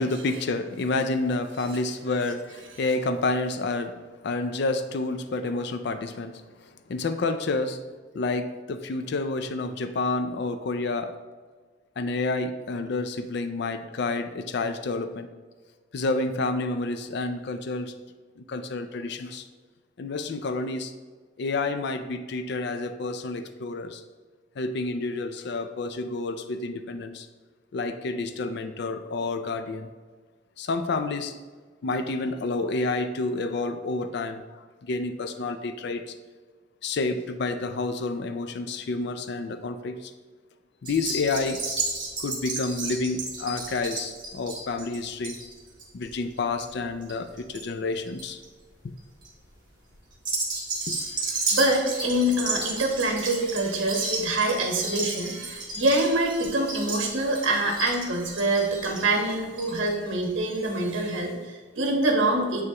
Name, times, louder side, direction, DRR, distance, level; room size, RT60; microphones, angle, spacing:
voice 1, 0.0-4.0 4.2-6.4 6.9-7.8 8.1-11.1 12.0-15.3 15.9-17.9 18.4-19.5 20.0-20.9 21.4-24.0 24.6-27.3 27.7-29.9 30.6-31.3 31.8-34.4 34.8-36.1 36.8-40.1 40.8-41.6 42.2-45.4 45.9-48.4 48.8-48.9 50.9-51.0, left 3 dB, 60° left, 9 dB, 0.4 m, -29 dB
sound 1, 40.9-47.6 47.9-48.4 49.0-49.3 50.1-59.9 60.2-60.3 60.6-60.7, right 3 dB, 25° right, 1.4 m, -32 dB
voice 2, 51.3-62.6, right 1 dB, 70° right, 0 dB, 1.3 m, -25 dB
9.5 x 3.5 x 2.9 m, 1.4 s
head